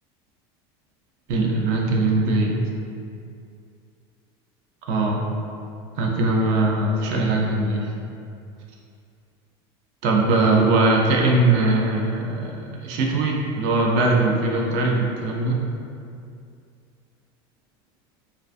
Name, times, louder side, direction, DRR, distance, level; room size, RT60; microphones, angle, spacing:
voice 1, 1.3-2.6 4.9-5.2 6.0-7.9 10.0-12.6 12.8-15.6, right 2 dB, 60° right, -1 dB, 0.4 m, -21 dB
2.4 x 2.2 x 2.4 m, 2.4 s
supercardioid pair, 140°, 13 cm